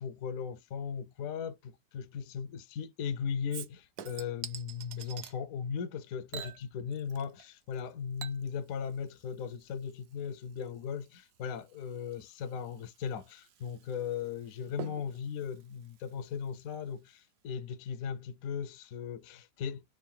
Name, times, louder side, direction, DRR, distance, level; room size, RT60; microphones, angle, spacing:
voice 1, 0.0-19.8, left 7 dB, 70° left, 0.8 m, -38 dB
Chink clink / Liquid, 3.5-5.4 6.3-7.5 7.7-16.8 17.1-17.2, right 9 dB, 70° right, 1.1 m, -49 dB
3.6 x 2.4 x 3.6 m
omnidirectional pair, 1.8 m